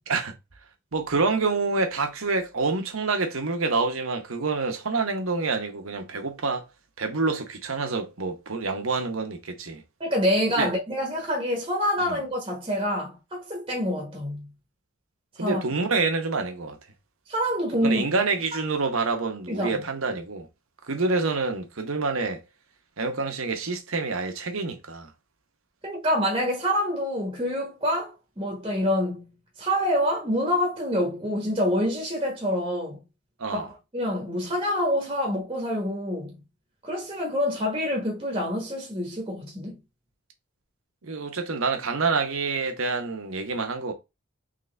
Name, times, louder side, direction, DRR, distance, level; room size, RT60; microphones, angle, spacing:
voice 1, 0.9-6.6 7.0-9.8 10.6-10.7 12.0-12.2 15.4-16.8 17.8-20.5 20.9-22.4 23.0-25.1 33.4-33.7 41.0-43.9, right 3 dB, 80° right, 1.1 m, -27 dB
voice 2, 10.0-14.5 15.4-15.6 17.3-18.0 19.5-19.8 25.8-29.3 29.6-33.0 33.5-36.4 36.8-39.8, equal, 25° right, 1.1 m, -26 dB
3.9 x 3.4 x 3.3 m
head